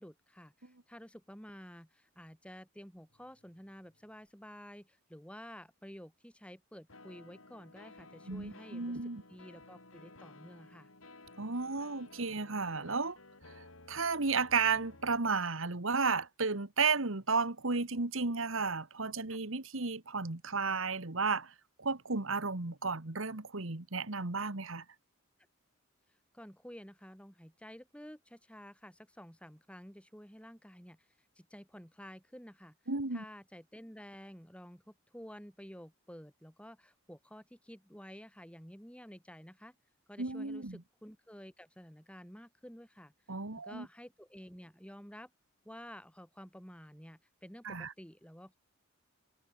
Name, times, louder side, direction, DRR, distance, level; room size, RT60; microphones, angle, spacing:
voice 1, 0.0-10.9 19.3-19.4 26.3-31.1 31.4-32.8 33.1-39.8 40.1-43.1 43.6-45.3 45.6-48.6, equal, 5° left, 7.5 m, -51 dB
sound 1, 3.1-4.2 6.9-15.2, left 2 dB, 75° left, 6.5 m, -56 dB
voice 2, 8.3-9.2 11.4-13.2 13.9-21.5 21.8-24.8 32.9-33.2 40.2-40.8 43.3-43.9 47.6-47.9, right 4 dB, 70° right, 1.7 m, -33 dB
head